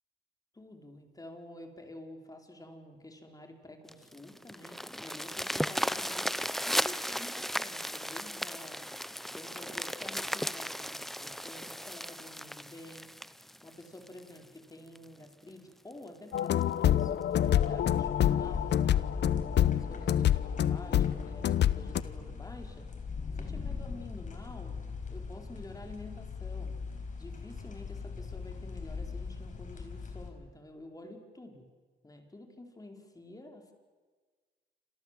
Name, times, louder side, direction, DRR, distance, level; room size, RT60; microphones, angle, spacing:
voice 1, 0.5-6.3 6.6-8.9 9.3-13.1 13.6-22.9 23.4-24.8 25.1-26.8 27.2-31.7 32.0-33.7, left 1 dB, 20° left, 4 dB, 4.6 m, -49 dB
sound 1, 3.9-14.4 14.9-15.0 15.5-15.6 15.9-16.0 16.4-16.6 17.5-17.6, equal, ahead, 0.8 m, -36 dB
sound 2, 16.3-22.0, left 11 dB, 60° left, 0.9 m, -26 dB
sound 3, 17.3-30.3, left 5 dB, 40° left, 5.2 m, -40 dB
28.5 x 27.0 x 7.7 m, 1.5 s
cardioid pair, 90°, 20 cm